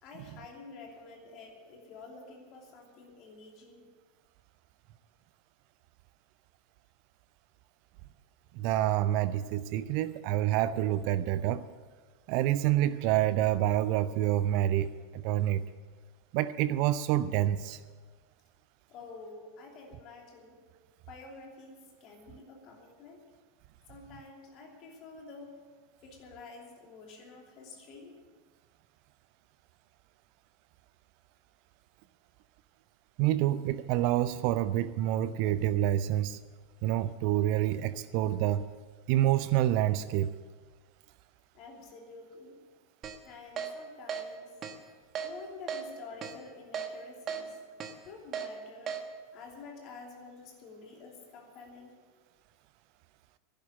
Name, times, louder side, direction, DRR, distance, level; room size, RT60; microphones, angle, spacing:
voice 1, 0.0-3.8 18.9-20.6 21.1-23.2 23.9-25.6 26.0-28.1 41.5-42.6 43.2-44.5 45.2-47.6 48.0-49.0 49.3-52.0, left 4 dB, 40° left, 1 dB, 2.8 m, -49 dB
voice 2, 8.6-11.6 12.3-14.9 15.2-15.6 16.3-17.8 33.2-36.4 36.8-38.6 39.1-40.3, right 13 dB, 50° right, 15 dB, 0.4 m, -27 dB
Keyboard (musical), 43.0-43.2 43.6-43.7 44.1-44.2 44.6-44.8 45.2-45.3 45.7-45.8 46.2-46.3 46.7-46.9 47.3-47.4 47.8-47.9 48.3-48.5 48.9-49.0, right 8 dB, 35° right, 1.4 m, -35 dB
11.5 x 10.5 x 8.3 m, 1.5 s
figure-of-eight pair, 85°, 0 cm